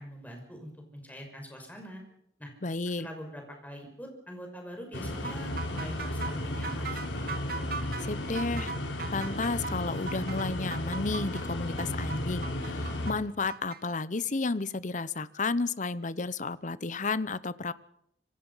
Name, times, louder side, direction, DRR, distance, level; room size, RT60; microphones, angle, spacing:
voice 1, 0.0-2.0 2.4-2.5 3.0-7.2, equal, 10° left, 2 dB, 5.9 m, -43 dB
voice 2, 2.6-3.1 8.0-8.7 9.1-17.7, left 3 dB, 40° left, 17 dB, 0.8 m, -32 dB
sound 1, 4.9-13.1, left 1 dB, 85° left, 4.3 m, -34 dB
sound 2, 5.2-13.8, right 5 dB, 55° right, 1.8 m, -39 dB
26.0 x 24.5 x 5.7 m, 0.76 s
head